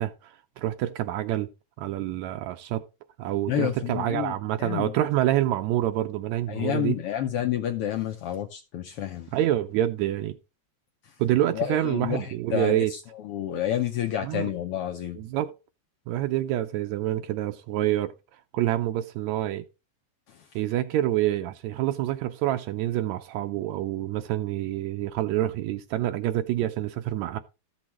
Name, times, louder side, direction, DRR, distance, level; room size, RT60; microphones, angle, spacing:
voice 1, 0.0-1.5 1.8-2.8 3.2-7.0 9.3-10.3 11.2-12.9 14.2-14.5 15.2-15.5 16.1-18.1 18.5-19.6 20.6-27.4, right 13 dB, 80° right, 1.9 m, -27 dB
voice 2, 3.5-4.3 4.6-4.9 6.5-9.3 11.5-12.8 13.2-15.2, left 11 dB, 75° left, 1.4 m, -29 dB
13.5 x 6.3 x 3.0 m
omnidirectional pair, 3.3 m